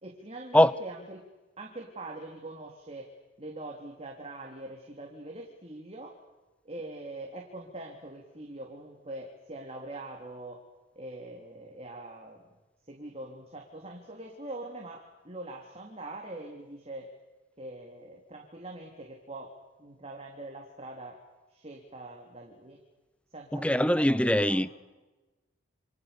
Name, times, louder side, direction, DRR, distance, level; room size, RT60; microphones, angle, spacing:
voice 1, 0.0-1.3 1.6-3.1 3.4-6.2 6.6-10.6 11.0-12.4 12.9-17.1 17.6-19.5 19.8-21.2 21.5-22.8 23.3-24.6, right 2 dB, 30° right, 3.5 m, -43 dB
voice 2, 23.5-24.8, left 1 dB, 5° left, 0.8 m, -22 dB
29.5 x 28.0 x 7.0 m
head